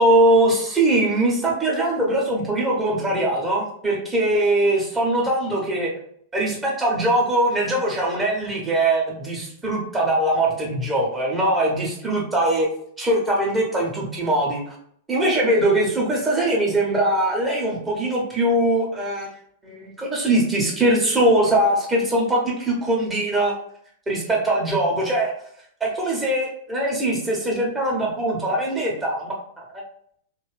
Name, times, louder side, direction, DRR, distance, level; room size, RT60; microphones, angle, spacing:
voice 1, 0.0-5.9 6.3-12.7 13.0-14.7 15.1-19.3 19.6-23.5 24.1-25.3 25.8-29.6, right 1 dB, 15° right, -3 dB, 1.2 m, -21 dB
2.8 x 2.7 x 3.3 m, 0.64 s
figure-of-eight pair, 95°, 0 cm